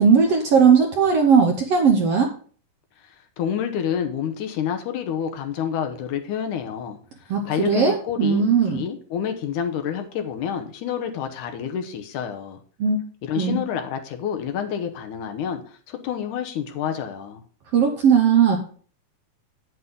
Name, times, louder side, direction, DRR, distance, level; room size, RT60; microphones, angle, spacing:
voice 1, 0.0-2.3 7.3-8.8 12.8-13.0 13.4-13.6 17.7-18.6, right 6 dB, 65° right, 3 dB, 1.6 m, -18 dB
voice 2, 3.0-12.6 13.2-17.4, left 8 dB, 70° left, 6 dB, 2.3 m, -29 dB
9.3 x 8.1 x 3.7 m, 0.43 s
omnidirectional pair, 3.8 m